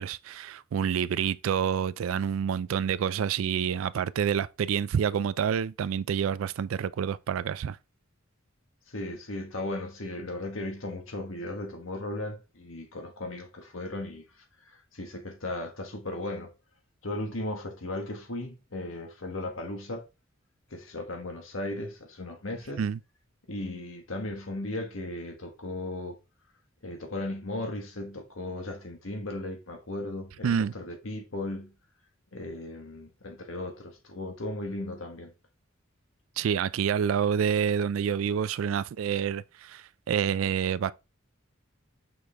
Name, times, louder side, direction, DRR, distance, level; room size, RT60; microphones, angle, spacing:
voice 1, 0.0-7.8 22.8-23.0 30.4-30.7 36.4-40.9, right 7 dB, 85° right, 0.3 m, -28 dB
voice 2, 8.9-14.2 14.7-16.5 17.0-20.0 20.7-22.8 23.5-26.2 26.8-31.7 32.3-35.3, left 1 dB, 80° left, 1.6 m, -36 dB
6.2 x 4.9 x 3.4 m
head